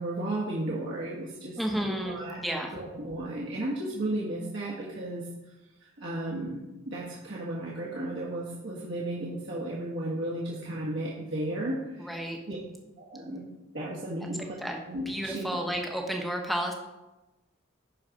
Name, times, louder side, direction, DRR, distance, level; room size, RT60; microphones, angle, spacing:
voice 1, 0.0-2.4 2.7-5.2 6.0-12.6 13.0-13.5 13.7-14.5 14.9-15.4, right 1 dB, 60° right, -6 dB, 1.4 m, -34 dB
voice 2, 1.6-2.7 12.0-12.4 14.2-14.3 14.6-14.8 15.1-16.7, equal, ahead, 1 dB, 0.8 m, -32 dB
10.5 x 4.0 x 5.2 m, 1.0 s
head